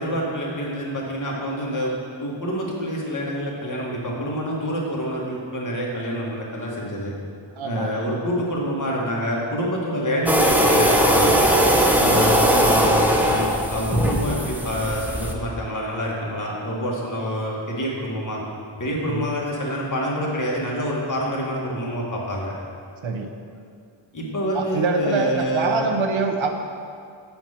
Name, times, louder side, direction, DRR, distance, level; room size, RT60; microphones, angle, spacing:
voice 1, 0.0-1.9 2.2-7.1 7.6-11.4 11.9-18.4 18.8-22.5 24.1-25.9, equal, 40° left, -3 dB, 1.5 m, -27 dB
voice 2, 7.5-7.9 11.9-12.2 14.4-14.5 19.1-19.3 23.0-23.3 24.5-26.5, right 4 dB, 80° right, 4 dB, 0.8 m, -25 dB
sound 1, 10.3-15.3, equal, 5° right, 0.6 m, -19 dB
7.7 x 4.4 x 5.6 m, 2.3 s
wide cardioid pair, 90°, 47 cm